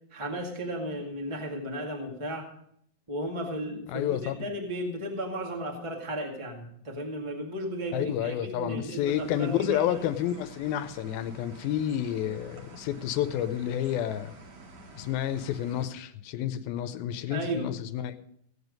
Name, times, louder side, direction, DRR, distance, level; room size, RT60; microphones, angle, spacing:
voice 1, 0.1-2.5 3.1-10.0 17.3-17.7, right 1 dB, 15° right, 0 dB, 1.0 m, -35 dB
voice 2, 3.9-4.4 7.9-14.3 14.9-18.1, left 11 dB, 90° left, 9 dB, 2.6 m, -30 dB
sound 1, 9.0-15.9, right 2 dB, 50° right, 2.9 m, -50 dB
17.5 x 8.1 x 5.2 m, 0.67 s
omnidirectional pair, 4.2 m